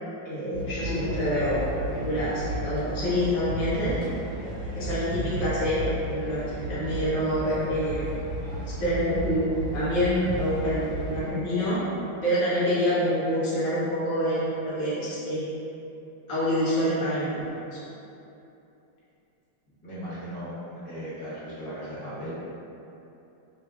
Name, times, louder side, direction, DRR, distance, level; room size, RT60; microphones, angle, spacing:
voice 1, 0.2-4.0 4.7-8.0 8.8-11.8 12.2-15.5 16.3-17.4 17.7-17.8, equal, 25° left, -12 dB, 0.8 m, -26 dB
sound 1, 0.5-11.3, right 1 dB, 60° right, 0.7 m, -34 dB
voice 2, 19.8-22.3, equal, 60° left, -11 dB, 1.6 m, -37 dB
4.9 x 2.6 x 2.3 m, 2.9 s
omnidirectional pair, 2.0 m